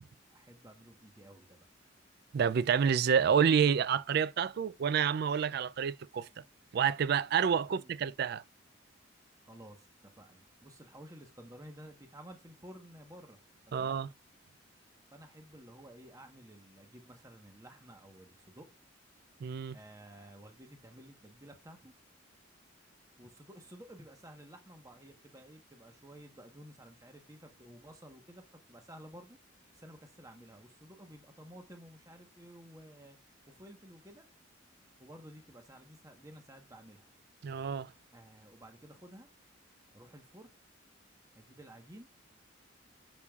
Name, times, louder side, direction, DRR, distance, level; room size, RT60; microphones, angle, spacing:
voice 1, 0.3-1.6 7.5-7.9 9.4-13.4 13.7-14.0 15.1-18.7 19.7-21.9 23.2-29.4 29.7-33.2 33.5-34.3 35.0-37.1 38.1-39.3 39.9-40.5 41.3-42.1, right 1 dB, 15° right, 1.1 m, -53 dB
voice 2, 2.3-6.3 6.7-8.4 13.7-14.1 19.4-19.8 37.4-37.9, right 7 dB, 55° right, 0.3 m, -28 dB
8.3 x 7.1 x 2.4 m
head